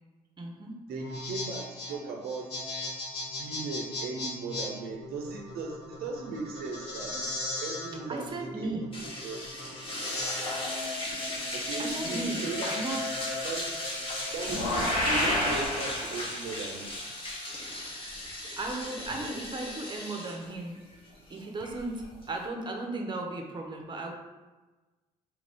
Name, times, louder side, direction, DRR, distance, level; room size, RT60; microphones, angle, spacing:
voice 1, 0.4-0.7 8.1-8.9 9.6-9.8 10.5-10.7 11.3-11.5 11.8-13.0 18.6-20.8 21.3-24.1, right 2 dB, 30° right, 2 dB, 0.7 m, -36 dB
sound 1, 0.9-15.7, left 2 dB, 80° left, 1.0 m, -38 dB
voice 2, 0.9-2.7 3.4-8.7 9.2-9.4 11.5-12.9 13.4-13.9 14.3-17.0, right 3 dB, 70° right, 1 dB, 0.5 m, -37 dB
sound 2, 8.9-22.5, left 1 dB, 35° left, 1.0 m, -37 dB
sound 3, 14.4-16.6, left 1 dB, 60° left, 1.3 m, -29 dB
3.1 x 2.5 x 3.4 m, 1.2 s
supercardioid pair, 70°, 17 cm